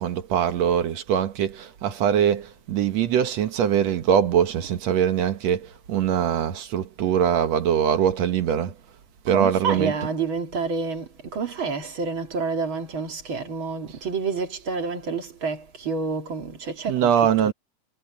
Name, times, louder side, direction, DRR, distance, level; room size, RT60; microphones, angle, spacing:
voice 1, 0.0-8.8 9.3-10.1 13.9-14.0 16.9-17.5, right 8 dB, 65° right, 2.4 m, -22 dB
voice 2, 9.3-17.5, right 4 dB, 45° right, 3.0 m, -29 dB
omnidirectional pair, 3.4 m